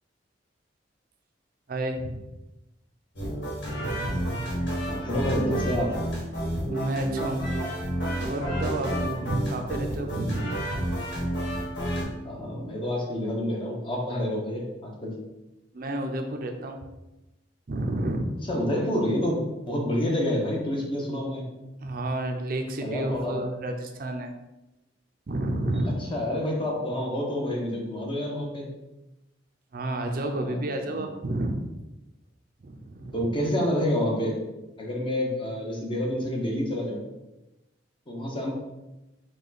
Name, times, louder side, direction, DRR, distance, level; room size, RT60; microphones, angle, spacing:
voice 1, 1.7-2.2 3.7-4.6 6.7-7.4 8.2-10.6 15.7-16.8 17.7-18.3 21.8-24.3 25.3-26.0 29.7-31.6 32.6-33.3, right 1 dB, 55° right, 4 dB, 0.5 m, -30 dB
sound 1, 3.2-12.0, equal, 75° left, 1.5 m, -30 dB
voice 2, 4.9-6.0 12.2-15.2 18.5-19.4 19.7-21.4 22.8-23.4 25.9-28.7 30.3-31.1 33.1-34.4 34.8-37.0 38.1-38.5, left 1 dB, 30° left, -1 dB, 0.8 m, -28 dB
4.9 x 2.2 x 4.0 m, 1.0 s
head